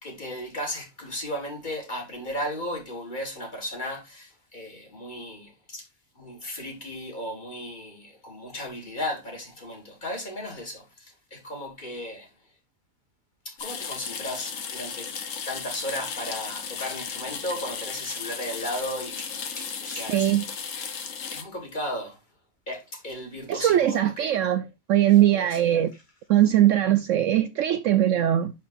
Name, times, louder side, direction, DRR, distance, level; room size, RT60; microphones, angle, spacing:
voice 1, 0.0-5.9 6.2-12.3 13.5-15.1 15.5-20.4 21.3-22.2 22.7-24.4 25.0-25.6, left 1 dB, 30° left, 1.8 m, -35 dB
sound 1, 13.6-21.4, left 6 dB, 60° left, 1.3 m, -35 dB
voice 2, 20.1-20.4 23.5-25.9 26.3-28.5, right 12 dB, 65° right, 0.8 m, -21 dB
11.5 x 4.4 x 2.5 m
omnidirectional pair, 1.6 m